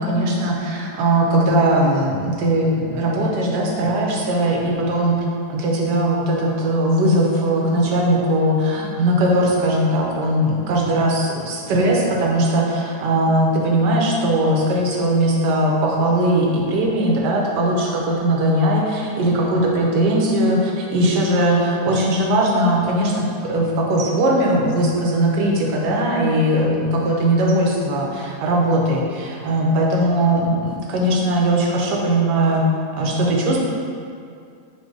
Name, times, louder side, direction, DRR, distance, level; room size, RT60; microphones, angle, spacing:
voice 1, 0.0-5.2 5.5-32.6 32.9-33.6, right 1 dB, 90° right, -1 dB, 1.3 m, -19 dB
4.3 x 2.6 x 4.7 m, 2.4 s
omnidirectional pair, 1.8 m